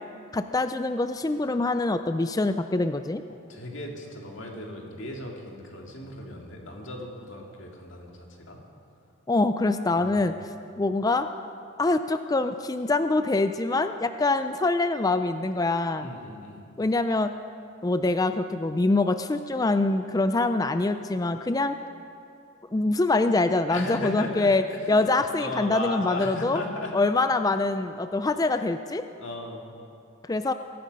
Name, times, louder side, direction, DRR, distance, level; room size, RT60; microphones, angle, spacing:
voice 1, 0.3-3.2 9.3-10.3 10.8-11.3 11.8-16.1 16.8-17.3 17.8-21.8 22.7-26.6 26.9-29.1 30.3-30.5, left 2 dB, 15° left, 10 dB, 0.3 m, -24 dB
voice 2, 3.3-8.6 10.0-10.1 16.0-16.7 23.7-25.1 25.4-26.9 28.5-28.7 29.2-29.7, left 2 dB, 60° left, 0 dB, 2.2 m, -36 dB
22.5 x 10.5 x 5.3 m, 2.5 s
head